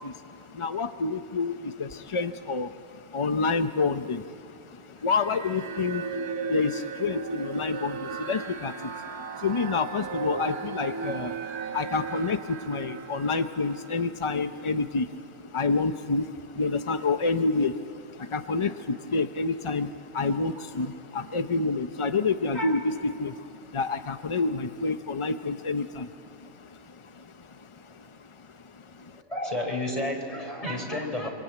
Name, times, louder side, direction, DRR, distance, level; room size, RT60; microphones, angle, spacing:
voice 1, 0.0-29.2, left 4 dB, 50° left, 9 dB, 0.3 m, -29 dB
sound 1, 5.1-14.6, right 5 dB, 70° right, 1.5 m, -36 dB
voice 2, 29.3-31.3, left 1 dB, 20° left, 2 dB, 4.1 m, -31 dB
26.0 x 24.5 x 9.2 m, 2.5 s
omnidirectional pair, 1.6 m